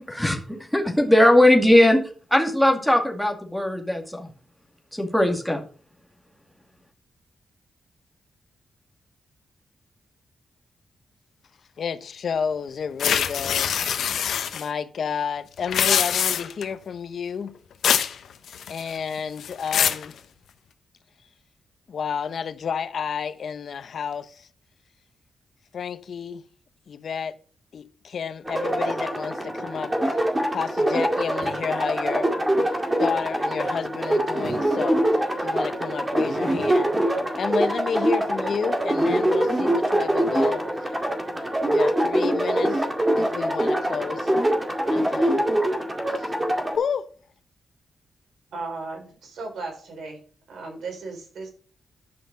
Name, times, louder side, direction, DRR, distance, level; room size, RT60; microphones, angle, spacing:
voice 1, 0.7-2.0 2.3-4.3 5.0-5.6, left 1 dB, ahead, 2.2 m, -19 dB
voice 2, 11.8-13.8 14.5-17.5 18.7-20.1 21.9-24.5 25.7-26.4 26.9-27.3 27.7-30.0 30.5-32.3 33.0-35.0 35.4-36.9 37.4-40.6 41.7-42.9 43.2-44.3 44.9-45.4 46.8-47.1, left 6 dB, 65° left, 0.9 m, -30 dB
sound 1, 13.0-14.6 15.6-16.6 17.8-18.1 18.5-19.0 19.4-20.0, left 8 dB, 85° left, 0.9 m, -23 dB
sound 2, 28.5-46.8, right 1 dB, 15° right, 2.1 m, -24 dB
sound 3, 31.4-31.8 34.4-34.9 35.3-35.4, right 2 dB, 50° right, 2.4 m, -42 dB
voice 3, 48.5-50.2 50.5-51.5, right 3 dB, 80° right, 4.7 m, -35 dB
11.0 x 5.8 x 5.3 m
cardioid pair, 110°, 0 cm